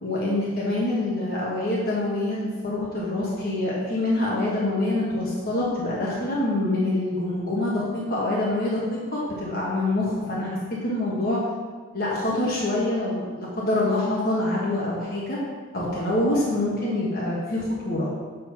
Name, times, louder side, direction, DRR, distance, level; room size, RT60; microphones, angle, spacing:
voice 1, 0.0-10.6 10.8-11.4 11.9-15.4 15.7-18.1, left 1 dB, 45° left, -6 dB, 1.3 m, -25 dB
7.1 x 4.1 x 5.9 m, 1.5 s
head